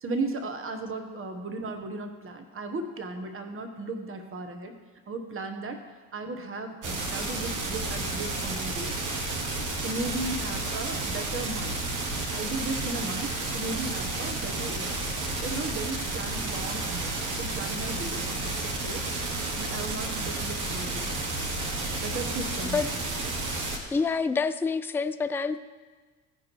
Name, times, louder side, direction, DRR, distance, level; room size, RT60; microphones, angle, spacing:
voice 1, 0.0-4.7 5.1-5.9 6.1-8.9 9.8-11.8 12.3-15.0 15.4-19.0 19.4-21.2 22.0-22.8, right 2 dB, 30° right, 6 dB, 1.3 m, -36 dB
sound 1, 6.8-23.8, right 2 dB, 50° right, 1.7 m, -31 dB
voice 2, 23.9-25.6, left 4 dB, 5° left, 11 dB, 0.3 m, -27 dB
15.5 x 5.2 x 4.6 m, 1.4 s
hypercardioid pair, 60°, 40 cm